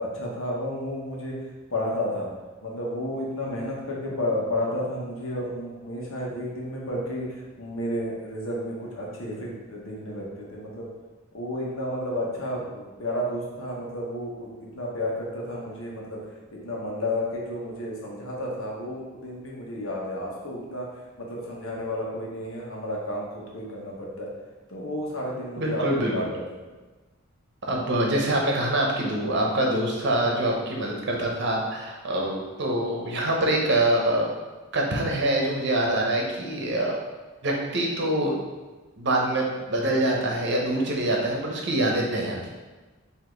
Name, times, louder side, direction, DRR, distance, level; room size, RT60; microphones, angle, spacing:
voice 1, 0.0-1.3 1.7-2.3 2.6-10.9 11.3-20.9 21.2-24.3 24.7-26.6, left 1 dB, 85° left, -3 dB, 1.1 m, -32 dB
voice 2, 25.6-26.3 27.7-34.3 34.7-37.0 37.4-38.4 39.0-42.5, right 1 dB, 60° right, -1 dB, 0.9 m, -25 dB
4.8 x 2.8 x 3.9 m, 1.2 s
head